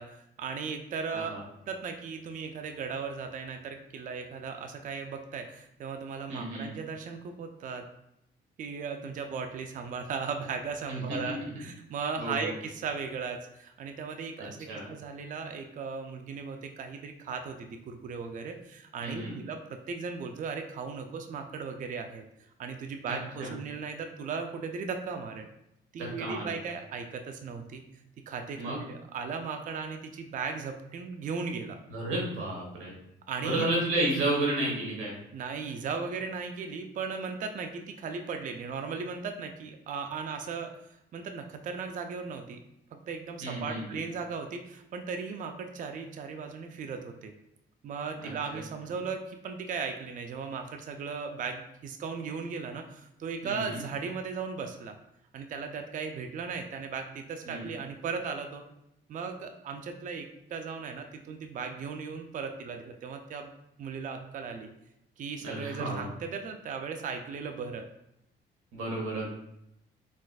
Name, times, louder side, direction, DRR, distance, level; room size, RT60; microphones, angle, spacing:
voice 1, 0.0-1.3 1.7-7.8 8.6-22.2 22.6-25.5 25.9-27.8 28.3-31.8 33.3-33.7 35.3-40.7 41.1-42.6 42.9-47.3 47.8-55.0 55.3-58.6 59.1-63.5 63.8-64.7 65.2-67.9, right 5 dB, 40° right, 5 dB, 0.4 m, -37 dB
voice 2, 6.3-6.7 10.9-11.5 12.2-12.5 14.4-14.9 19.0-19.4 23.1-23.5 26.0-26.6 28.6-28.8 31.9-32.9 33.4-35.1 43.4-44.0 48.2-48.3 53.4-53.8 57.5-57.7 65.4-66.1 68.7-69.3, right 1 dB, 85° right, -2 dB, 1.1 m, -32 dB
4.0 x 2.4 x 2.3 m, 0.81 s
cardioid pair, 90°, 20 cm